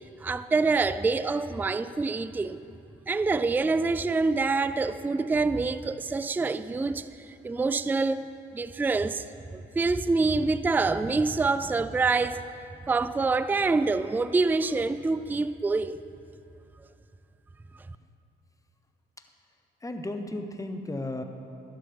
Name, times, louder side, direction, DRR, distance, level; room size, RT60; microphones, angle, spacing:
voice 1, 0.2-2.6 3.1-7.1 7.4-12.4 12.9-16.0, right 3 dB, 10° right, 13 dB, 0.3 m, -26 dB
voice 2, 19.8-21.2, left 2 dB, 15° left, 6 dB, 1.0 m, -34 dB
12.0 x 11.5 x 3.5 m, 2.6 s
supercardioid pair, 60°, 21 cm